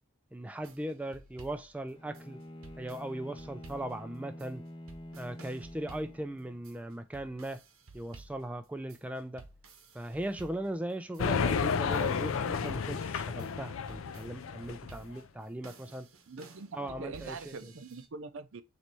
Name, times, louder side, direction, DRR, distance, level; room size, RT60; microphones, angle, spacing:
voice 1, 0.3-2.4 2.8-4.6 5.2-7.6 7.9-9.4 9.9-16.1 16.7-17.5, right 1 dB, 5° right, 0.3 m, -38 dB
sound 1, 0.6-18.1, right 3 dB, 90° right, 1.0 m, -54 dB
Bowed string instrument, 1.9-6.8, left 1 dB, 25° left, 0.6 m, -47 dB
sound 2, 11.2-15.0, left 6 dB, 70° left, 0.4 m, -31 dB
voice 2, 16.3-18.6, right 4 dB, 65° right, 0.6 m, -43 dB
4.0 x 3.2 x 2.9 m
head